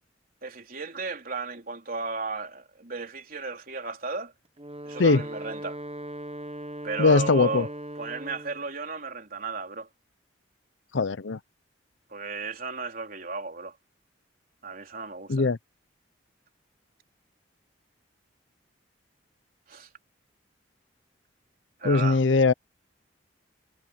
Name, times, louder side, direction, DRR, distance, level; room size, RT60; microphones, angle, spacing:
voice 1, 0.4-4.3 4.9-5.8 6.8-7.7 8.0-9.9 12.1-13.8 14.6-15.5 19.7-19.9 21.8-22.2, right 4 dB, 50° right, 3.9 m, -34 dB
Wind instrument woodwind instrument, 4.5-8.7, right 1 dB, 30° right, 1.1 m, -39 dB
voice 2, 7.0-7.7 10.9-11.4 15.3-15.6 21.8-22.5, left 3 dB, 75° left, 0.7 m, -21 dB
head